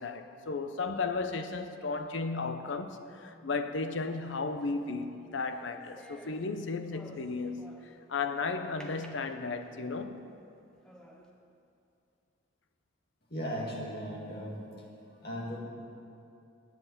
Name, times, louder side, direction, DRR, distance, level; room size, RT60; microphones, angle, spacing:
voice 1, 0.0-10.3, left 4 dB, 70° left, 0.7 m, -34 dB
sound 1, 3.7-8.1 8.8-9.9 10.4-10.5 10.8-11.3, equal, 5° left, 0.8 m, -55 dB
voice 2, 13.3-14.8 15.2-15.6, equal, 50° left, 2.1 m, -37 dB
9.3 x 8.0 x 8.3 m
head